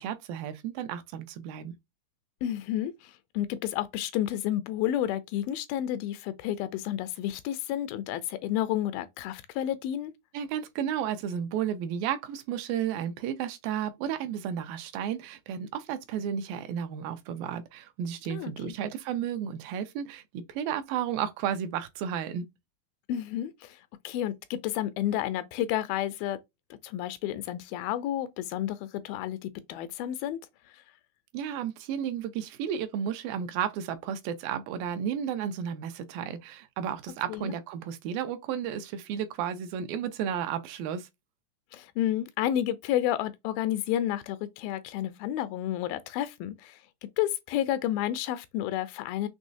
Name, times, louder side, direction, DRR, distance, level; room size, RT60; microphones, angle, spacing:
voice 1, 0.0-1.8 10.3-22.5 31.3-41.1, right 9 dB, 85° right, 2.3 m, -33 dB
voice 2, 2.4-10.1 18.3-18.7 23.1-26.4 26.8-30.4 30.7-30.8 37.3-37.5 41.7-49.3, left 12 dB, 80° left, 2.3 m, -31 dB
6.2 x 3.1 x 2.6 m
omnidirectional pair, 4.3 m